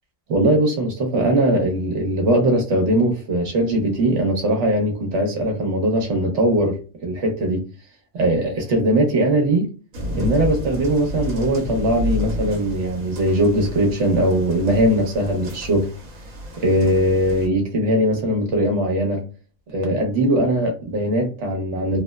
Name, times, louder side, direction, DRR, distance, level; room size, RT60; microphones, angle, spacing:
voice 1, 0.3-7.6 8.1-9.6 10.1-15.9 16.6-19.2 19.7-22.0, right 1 dB, 65° right, 1 dB, 1.2 m, -20 dB
sound 1, 9.9-17.5, left 1 dB, 85° right, 1.2 m, -30 dB
3.0 x 2.0 x 2.2 m, 0.35 s
omnidirectional pair, 1.3 m